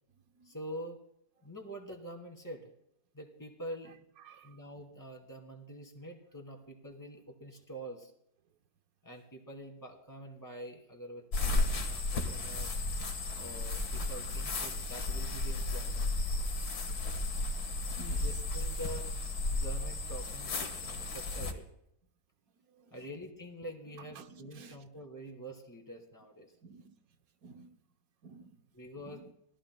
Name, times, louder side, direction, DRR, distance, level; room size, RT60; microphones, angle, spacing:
voice 1, 0.4-1.0 1.4-2.7 3.1-4.0 4.4-8.1 9.0-12.7 13.3-16.1 18.2-19.1 19.5-21.7 22.9-26.5 28.7-29.2, right 1 dB, 10° left, 2.3 m, -46 dB
sound 1, 11.3-21.5, left 2 dB, 75° left, 2.1 m, -34 dB
voice 2, 18.0-18.3 22.7-23.0 24.2-24.8 26.6-26.9 27.4-27.7 28.2-28.6 29.1-29.2, right 5 dB, 65° right, 1.3 m, -52 dB
26.0 x 18.0 x 2.2 m
omnidirectional pair, 1.7 m